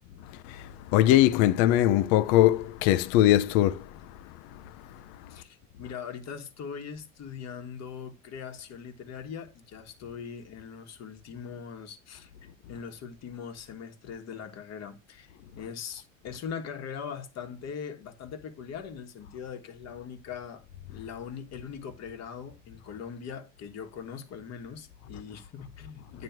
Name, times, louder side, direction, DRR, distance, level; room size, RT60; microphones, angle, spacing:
voice 1, 0.9-3.9, left 13 dB, 60° left, 0.6 m, -21 dB
voice 2, 5.3-12.3 12.7-20.6 20.9-26.2, left 7 dB, 40° left, 1.4 m, -41 dB
8.9 x 3.2 x 5.8 m
hypercardioid pair, 95°, 39 cm